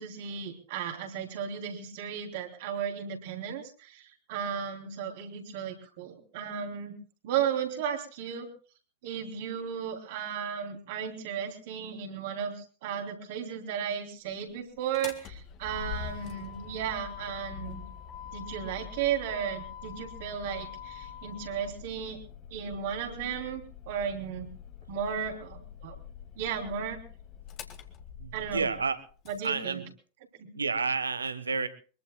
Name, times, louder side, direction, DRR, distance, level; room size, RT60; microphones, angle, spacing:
voice 1, 0.0-7.0 7.2-8.5 9.0-17.8 18.3-22.2 22.5-24.5 24.9-26.0 26.4-27.0 28.3-28.7 29.3-29.8 30.4-30.5, right 8 dB, 50° right, 3 dB, 3.1 m, -35 dB
Motor vehicle (road), 14.8-29.5, left 8 dB, 35° left, 1.9 m, -44 dB
voice 2, 28.2-29.0 29.4-29.9 30.5-31.7, right 4 dB, 75° right, 14 dB, 1.2 m, -30 dB
23.5 x 22.0 x 2.3 m, 0.37 s
figure-of-eight pair, 90°, 0 cm